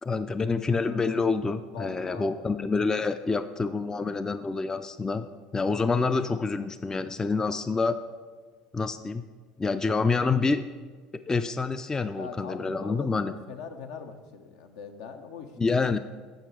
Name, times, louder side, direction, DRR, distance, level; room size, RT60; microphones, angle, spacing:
voice 1, 0.0-5.3 5.5-8.0 8.7-9.2 9.6-10.7 11.3-13.3 15.6-16.0, left 4 dB, 15° left, 11 dB, 0.3 m, -27 dB
voice 2, 1.7-2.6 12.1-15.6, left 6 dB, 70° left, 6 dB, 0.7 m, -41 dB
7.7 x 5.9 x 4.6 m, 1.5 s
hypercardioid pair, 70°, 3 cm